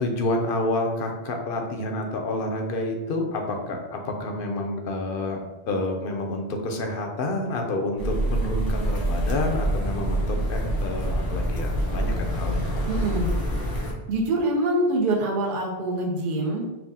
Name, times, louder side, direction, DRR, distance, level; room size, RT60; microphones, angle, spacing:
voice 1, 0.0-5.4 5.7-12.8, left 2 dB, 60° left, 3 dB, 0.7 m, -29 dB
sound 1, 8.0-13.9, right 1 dB, 35° left, 0.4 m, -26 dB
voice 2, 12.9-13.3 14.1-16.7, right 1 dB, 55° right, -1 dB, 0.8 m, -24 dB
5.7 x 2.1 x 2.7 m, 1.1 s
omnidirectional pair, 1.1 m